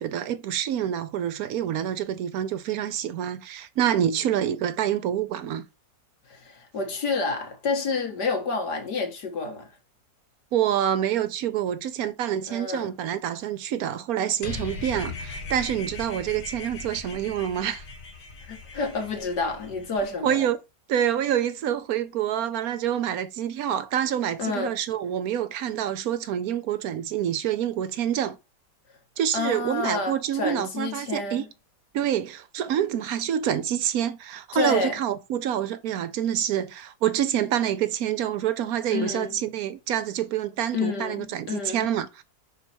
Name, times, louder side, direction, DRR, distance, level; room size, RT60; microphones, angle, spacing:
voice 1, 0.0-5.7 10.5-17.8 20.2-20.6 20.9-28.4 29.2-31.4 31.9-42.2, right 10 dB, 70° right, 1.0 m, -27 dB
voice 2, 6.3-9.7 12.5-12.9 18.5-20.5 24.4-24.7 29.3-31.5 34.5-35.0 38.9-39.4 40.7-41.9, left 4 dB, 85° left, 2.3 m, -29 dB
sound 1, 14.4-20.0, left 3 dB, 65° left, 1.8 m, -38 dB
5.5 x 4.3 x 4.4 m
omnidirectional pair, 1.7 m